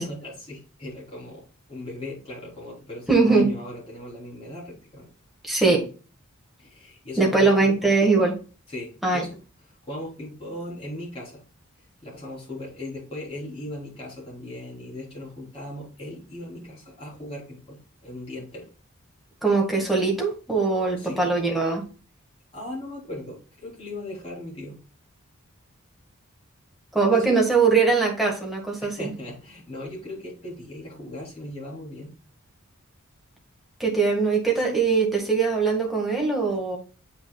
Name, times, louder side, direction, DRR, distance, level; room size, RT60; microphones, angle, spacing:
voice 1, 0.0-5.1 6.6-7.9 8.7-9.4 9.8-11.4 11.8-18.7 21.0-21.3 22.5-24.8 27.1-27.4 28.8-32.1, left 1 dB, 25° left, -6 dB, 3.6 m, -38 dB
voice 2, 3.1-3.5 5.4-5.8 7.2-8.3 9.0-9.2 19.4-21.8 26.9-29.1 33.8-36.8, right 4 dB, ahead, -1 dB, 1.8 m, -21 dB
8.2 x 5.7 x 2.3 m, 0.36 s
head